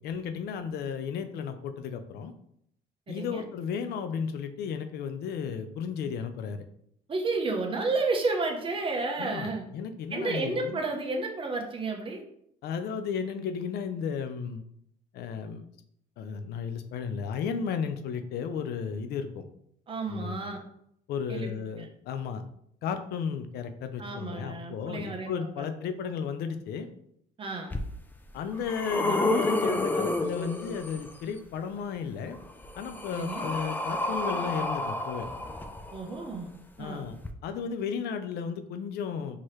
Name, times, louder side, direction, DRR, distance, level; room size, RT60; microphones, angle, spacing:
voice 1, 0.0-2.3 3.1-6.6 9.2-10.8 12.6-14.6 15.1-15.6 16.2-19.4 20.1-20.6 21.1-22.4 22.8-26.9 28.3-32.4 32.8-35.3 36.8-37.2 37.4-39.4, left 6 dB, 70° left, 8 dB, 0.5 m, -34 dB
voice 2, 3.1-3.4 7.1-9.6 10.1-12.2 19.9-20.6 21.3-21.5 21.8-21.9 24.0-25.3 25.6-25.7 27.4-27.7 33.1-33.4 35.9-36.5 36.8-37.1, right 3 dB, 30° right, 3 dB, 0.8 m, -31 dB
sound 1, 27.7-27.8 28.4-31.1 32.3-36.2 37.2-37.3, left 2 dB, 10° left, 0.4 m, -30 dB
4.6 x 2.9 x 3.1 m, 0.72 s
cardioid pair, 110°, 17 cm